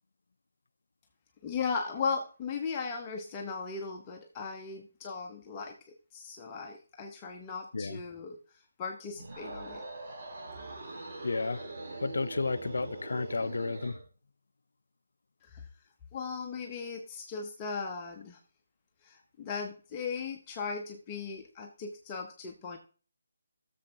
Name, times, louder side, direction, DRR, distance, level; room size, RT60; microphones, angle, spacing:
voice 1, 1.4-9.8 15.4-15.7 16.1-18.4 19.0-22.8, left 5 dB, 20° left, 0.8 m, -37 dB
sound 1, 9.1-14.0, right 2 dB, 50° right, 3.3 m, -42 dB
voice 2, 11.2-11.7 12.0-14.0, left 3 dB, 70° left, 0.4 m, -32 dB
14.5 x 7.0 x 2.8 m
figure-of-eight pair, 150°, 0 cm